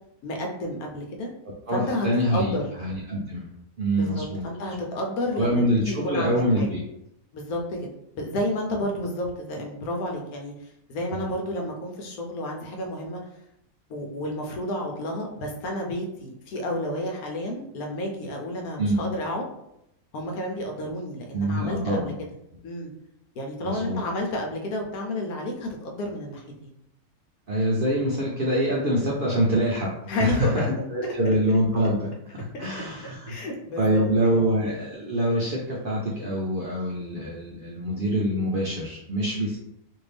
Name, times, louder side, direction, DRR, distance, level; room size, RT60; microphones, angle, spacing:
voice 1, 0.2-1.3 1.7-2.1 2.3-2.6 4.0-6.7 7.3-7.9 8.1-10.5 10.9-13.2 13.9-19.4 20.1-22.1 22.6-22.9 23.4-26.7 30.1-31.3 32.5-32.9 33.3-34.0 34.3-34.4, left 1 dB, 90° left, 1 dB, 1.2 m, -31 dB
voice 2, 1.7-3.5 3.8-4.4 5.3-6.8 11.1-11.3 18.8-19.0 21.3-22.1 23.6-24.0 27.5-29.9 30.2-33.3 33.8-39.6, equal, 65° right, -4 dB, 0.5 m, -25 dB
2.7 x 2.6 x 3.3 m, 0.81 s
omnidirectional pair, 1.5 m